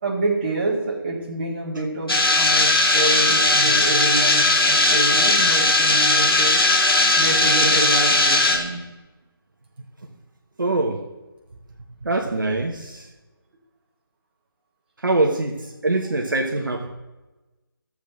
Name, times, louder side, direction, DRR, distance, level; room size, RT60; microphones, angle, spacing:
voice 1, 0.0-6.6 7.2-8.8, right 2 dB, 25° right, -2 dB, 1.5 m, -27 dB
sound 1, 2.1-8.6, left 2 dB, 70° left, 1.8 m, -18 dB
voice 2, 10.6-11.0 12.0-13.1 15.0-16.9, right 2 dB, 55° right, 2 dB, 1.0 m, -23 dB
13.5 x 7.5 x 3.7 m, 1.1 s
figure-of-eight pair, 155°, 13 cm